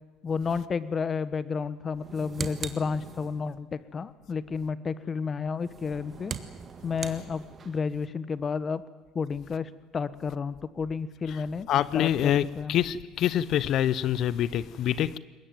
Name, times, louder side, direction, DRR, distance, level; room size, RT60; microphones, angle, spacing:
voice 1, 0.2-6.3 6.8-8.8 9.1-11.7 11.9-12.8, left 5 dB, 35° left, 1.3 m, -31 dB
sound 1, 1.9-3.6 5.6-7.9, right 6 dB, 35° right, 1.8 m, -40 dB
voice 2, 11.7-15.2, left 11 dB, 55° left, 0.7 m, -26 dB
22.5 x 20.0 x 9.3 m
hypercardioid pair, 70°, 0 cm